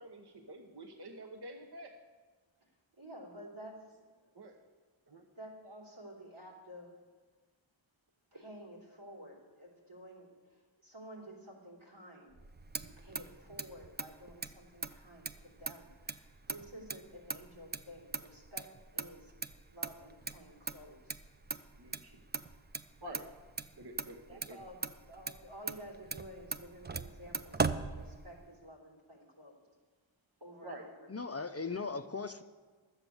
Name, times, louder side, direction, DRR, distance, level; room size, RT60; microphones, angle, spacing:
voice 1, 0.0-1.9 4.3-4.6 5.1-5.3 21.8-22.2 23.0-23.3 23.8-24.6 30.6-30.9, right 1 dB, 55° right, 2 dB, 1.1 m, -48 dB
voice 2, 3.0-3.8 5.3-6.9 8.3-12.3 12.7-18.7 18.9-19.3 19.7-21.2 24.3-29.5 30.4-31.4, equal, 85° right, -3 dB, 3.2 m, -52 dB
Motor vehicle (road), 12.3-28.6, right 4 dB, 20° right, 0.4 m, -41 dB
voice 3, 31.1-32.4, left 4 dB, 30° left, 9 dB, 0.5 m, -38 dB
12.0 x 8.0 x 7.0 m, 1.4 s
wide cardioid pair, 65°, 49 cm